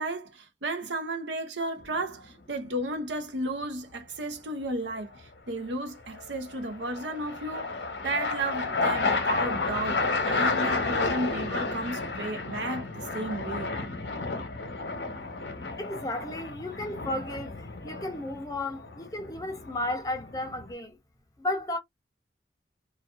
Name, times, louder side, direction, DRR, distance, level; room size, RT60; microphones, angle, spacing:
voice 1, 0.0-7.7 8.0-13.7, right 2 dB, 85° right, 0.7 m, -33 dB
sound 1, 1.8-2.3 6.1-20.7, left 3 dB, 75° left, 0.8 m, -32 dB
voice 2, 15.8-21.0 21.4-21.8, left 1 dB, 20° left, 0.5 m, -34 dB
2.4 x 2.3 x 2.2 m
head